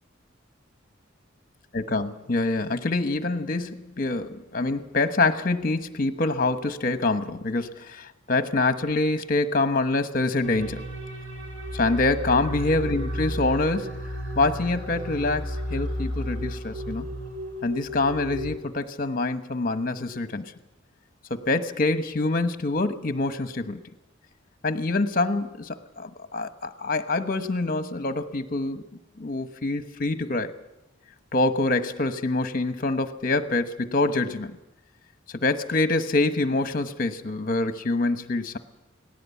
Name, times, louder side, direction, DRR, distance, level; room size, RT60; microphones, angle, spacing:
voice 1, 1.7-10.8 11.7-14.0 14.4-17.1 17.6-20.5 21.3-23.8 24.6-28.8 29.2-30.5 31.3-34.6 35.3-38.6, left 2 dB, 45° left, 10 dB, 1.1 m, -25 dB
sound 1, 10.4-18.6, equal, 80° right, 4.4 m, -33 dB
19.0 x 17.0 x 8.4 m, 0.99 s
head